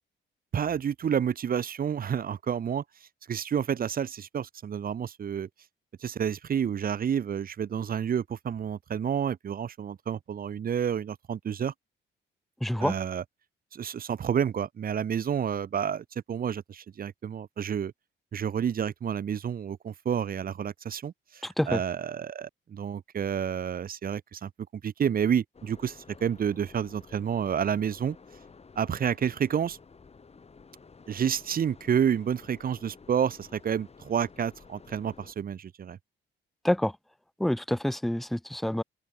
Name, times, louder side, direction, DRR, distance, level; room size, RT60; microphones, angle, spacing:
voice 1, 0.5-2.8 3.3-5.5 6.0-11.7 12.8-13.2 13.7-17.9 18.3-28.2 28.8-29.8 31.1-36.0, right 8 dB, 45° right, 1.1 m, -29 dB
voice 2, 12.6-12.9 21.6-21.8 36.6-36.9 37.4-38.8, left 1 dB, ahead, 0.3 m, -27 dB
sound 1, 25.5-35.3, left 4 dB, 30° left, 3.5 m, -52 dB
open air
cardioid pair, 90°, 20 cm